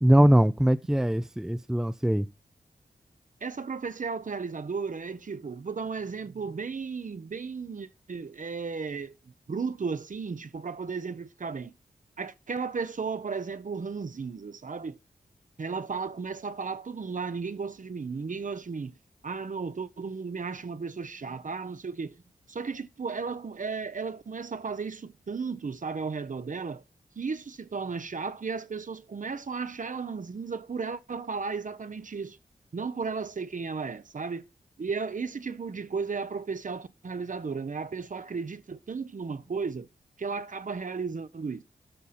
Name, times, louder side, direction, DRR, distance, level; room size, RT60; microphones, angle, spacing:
voice 1, 0.0-2.3, equal, 5° right, 0.5 m, -21 dB
voice 2, 3.4-9.2 9.5-11.8 12.2-15.0 15.6-19.0 19.2-22.2 22.5-26.8 27.2-32.4 32.7-34.5 34.8-39.9 40.2-41.6, right 5 dB, 50° right, 0.8 m, -34 dB
13.0 x 5.5 x 4.2 m
cardioid pair, 40°, 16 cm